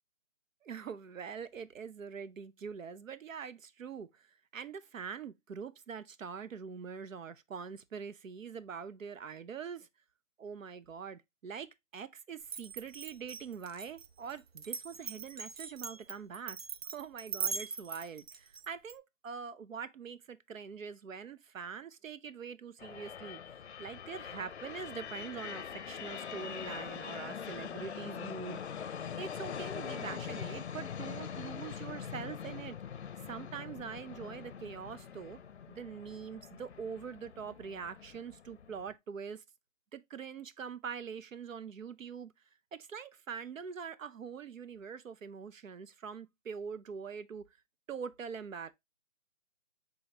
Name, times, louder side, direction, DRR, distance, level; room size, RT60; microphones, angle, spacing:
voice 1, 0.6-9.9 10.4-16.6 16.9-28.6 29.2-32.8 33.3-35.4 35.7-39.4 39.9-42.3 42.7-47.4 47.9-48.7, right 6 dB, 80° right, 0.8 m, -44 dB
Glass, 12.5-18.9, right 6 dB, 55° right, 0.5 m, -41 dB
sound 1, 22.8-38.9, left 7 dB, 60° left, 0.6 m, -43 dB
5.2 x 3.8 x 2.7 m
hypercardioid pair, 170°, 39 cm